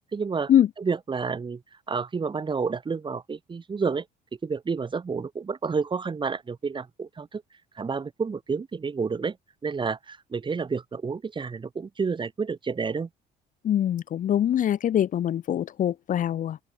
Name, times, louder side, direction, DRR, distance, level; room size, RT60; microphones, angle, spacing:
voice 1, 0.1-0.5 0.8-1.6 1.9-4.0 4.4-7.4 7.7-9.4 9.6-13.1, right 5 dB, 30° right, 4.8 m, -30 dB
voice 2, 13.6-16.6, left 10 dB, 50° left, 1.1 m, -23 dB
open air
cardioid pair, 110°, 17 cm